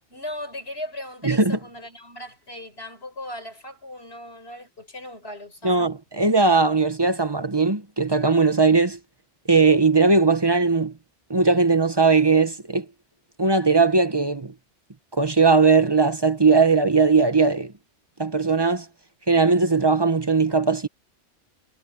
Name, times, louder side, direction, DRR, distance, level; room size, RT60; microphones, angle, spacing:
voice 1, 0.1-5.9, left 1 dB, 55° left, 6.3 m, -37 dB
voice 2, 1.2-1.6 5.6-9.0 9.5-10.9 11.3-12.8 13.4-14.5 15.1-17.7 18.2-18.9 19.3-20.9, right 4 dB, 20° right, 1.0 m, -19 dB
omnidirectional pair, 1.2 m